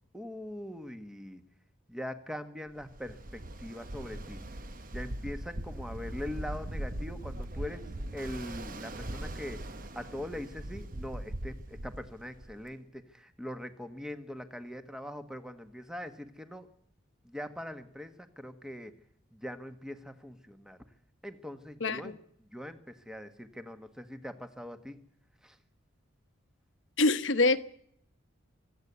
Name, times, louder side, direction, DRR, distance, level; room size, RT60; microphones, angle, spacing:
voice 1, 0.1-1.4 1.9-4.4 4.9-16.7 17.2-19.0 19.3-20.8 21.2-22.2 22.5-25.0 25.4-25.6, left 1 dB, 5° right, 8 dB, 1.3 m, -42 dB
Ocean, 2.8-12.7, right 1 dB, 40° right, 1.0 m, -40 dB
voice 2, 21.8-22.1 27.0-27.6, left 3 dB, 65° left, 11 dB, 1.1 m, -25 dB
25.0 x 12.5 x 8.2 m, 0.69 s
head